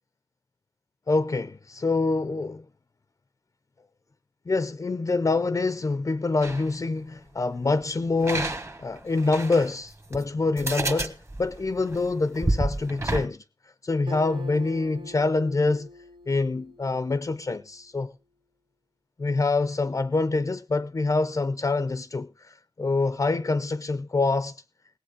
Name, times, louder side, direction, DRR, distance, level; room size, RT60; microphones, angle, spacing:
voice 1, 1.1-2.7 4.5-13.4 13.8-15.9 16.3-18.1 19.2-24.6, left 3 dB, 40° left, 0.5 m, -26 dB
sound 1, 6.4-6.7 8.2-9.7 10.1-10.2 10.6-13.3, right 2 dB, 30° right, 1.4 m, -29 dB
Acoustic guitar, 14.1-17.7, equal, 80° right, 2.3 m, -45 dB
18.5 x 7.7 x 5.0 m
wide cardioid pair, 90°, 9 cm